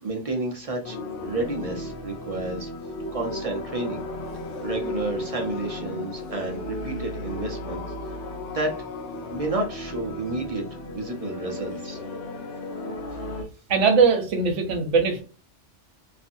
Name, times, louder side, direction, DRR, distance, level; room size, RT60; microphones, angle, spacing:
voice 1, 0.0-2.7 3.1-4.0 4.6-7.8 8.1-8.2 8.5-8.7 9.3-12.0, right 2 dB, 40° right, 1 dB, 0.5 m, -31 dB
sound 1, 0.8-13.4, left 2 dB, 75° left, 0.9 m, -35 dB
voice 2, 13.7-15.2, right 5 dB, 85° right, 5 dB, 1.1 m, -20 dB
2.6 x 2.4 x 2.6 m, 0.34 s
omnidirectional pair, 1.2 m